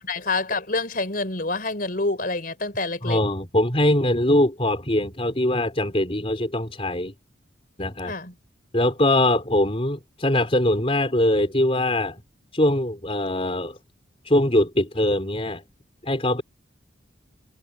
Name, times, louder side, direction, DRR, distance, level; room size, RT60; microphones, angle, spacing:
voice 1, 0.1-3.2 8.0-8.3, left 3 dB, 45° left, 4.6 m, -27 dB
voice 2, 3.0-7.1 7.8-8.1 8.7-12.2 12.5-13.8 14.3-15.6 16.0-16.4, left 1 dB, 30° left, 4.3 m, -22 dB
head